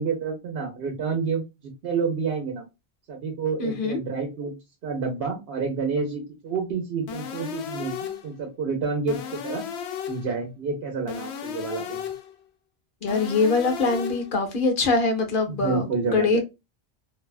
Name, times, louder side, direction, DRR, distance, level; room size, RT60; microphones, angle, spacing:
voice 1, 0.0-2.6 3.1-4.6 4.8-9.7 10.1-12.0 15.5-16.4, right 5 dB, 65° right, 0.9 m, -29 dB
voice 2, 3.6-4.0 13.0-16.4, left 3 dB, 55° left, 0.9 m, -23 dB
sound 1, 7.1-8.3 9.1-10.3 11.1-12.3 13.1-14.3, left 8 dB, 85° left, 0.8 m, -34 dB
2.6 x 2.3 x 2.3 m
omnidirectional pair, 1.1 m